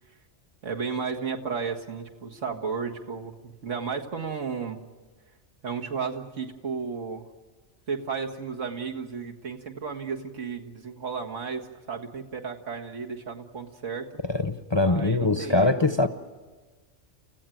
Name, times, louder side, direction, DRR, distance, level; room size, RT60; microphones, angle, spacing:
voice 1, 0.6-4.8 5.6-7.3 7.9-14.1 14.8-16.1, right 5 dB, 85° right, 1 dB, 2.1 m, -33 dB
voice 2, 14.2-16.1, left 2 dB, 25° left, 9 dB, 0.7 m, -23 dB
29.5 x 15.5 x 9.2 m, 1.3 s
omnidirectional pair, 1.2 m